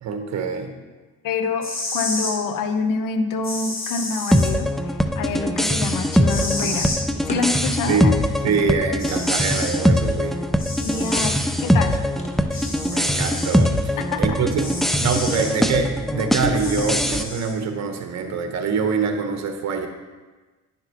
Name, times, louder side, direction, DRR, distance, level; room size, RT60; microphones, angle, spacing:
voice 1, 0.0-0.7 7.9-8.1 8.4-10.4 12.5-12.6 12.9-14.7 15.0-19.9, right 5 dB, 50° right, 5 dB, 1.2 m, -25 dB
voice 2, 1.2-6.9 7.3-8.1 10.8-12.0 14.0-14.4, left 4 dB, 70° left, 7 dB, 0.9 m, -27 dB
sound 1, 1.5-2.3 3.4-4.5 6.3-7.0 8.5-8.6 9.0-9.8 10.6-11.3 12.5-13.6 14.6-15.5 16.5-17.5, left 2 dB, 40° left, 2.0 m, -31 dB
sound 2, 4.3-17.2, equal, ahead, 0.3 m, -22 dB
sound 3, 5.6-16.5, left 1 dB, 20° left, 1.0 m, -45 dB
10.5 x 5.8 x 3.0 m, 1.3 s
supercardioid pair, 85°, 34 cm